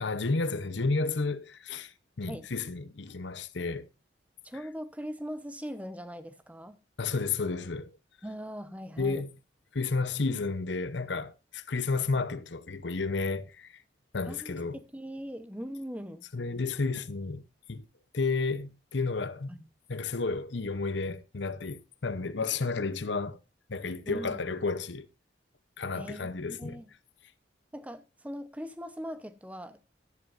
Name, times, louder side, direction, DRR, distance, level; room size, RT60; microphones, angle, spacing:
voice 1, 0.0-3.9 7.0-7.9 9.0-9.3 9.7-13.8 14.1-14.8 16.3-17.4 17.7-17.8 18.1-19.6 19.9-23.4 23.7-25.1 25.8-26.8, left 3 dB, 70° left, 0.9 m, -32 dB
voice 2, 4.4-6.8 8.2-9.2 14.2-16.3 19.5-19.7 24.1-24.4 25.9-26.9 27.7-29.8, equal, 10° right, 0.9 m, -40 dB
14.0 x 11.0 x 2.6 m
head